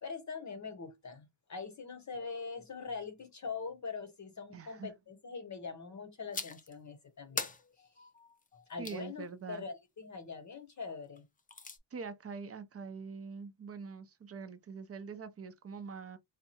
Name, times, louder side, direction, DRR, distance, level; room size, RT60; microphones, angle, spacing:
voice 1, 0.0-7.5 8.7-11.2, left 5 dB, 40° left, 0.8 m, -43 dB
voice 2, 4.5-4.9 8.8-9.6 11.9-16.2, right 5 dB, 30° right, 0.5 m, -44 dB
sound 1, 6.3-6.7 7.4-9.0 11.2-11.8, left 4 dB, 20° left, 0.4 m, -41 dB
4.0 x 2.3 x 2.8 m
cardioid pair, 110°, 45 cm